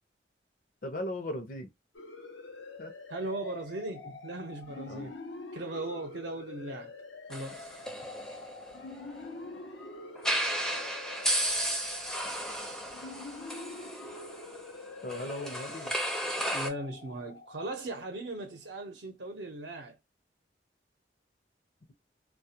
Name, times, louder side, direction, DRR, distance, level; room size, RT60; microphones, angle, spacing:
voice 1, 0.8-1.7 2.8-2.9 4.9-5.1 15.0-15.9, left 1 dB, 45° left, 0.6 m, -37 dB
sound 1, 1.9-18.3, left 3 dB, 85° left, 0.6 m, -46 dB
voice 2, 3.1-5.2 5.5-6.9 7.3-7.7 16.5-20.0, right 2 dB, 70° right, 0.7 m, -38 dB
sound 2, 7.3-9.4 10.2-16.7, right 1 dB, 5° left, 0.5 m, -34 dB
2.3 x 2.1 x 2.7 m
head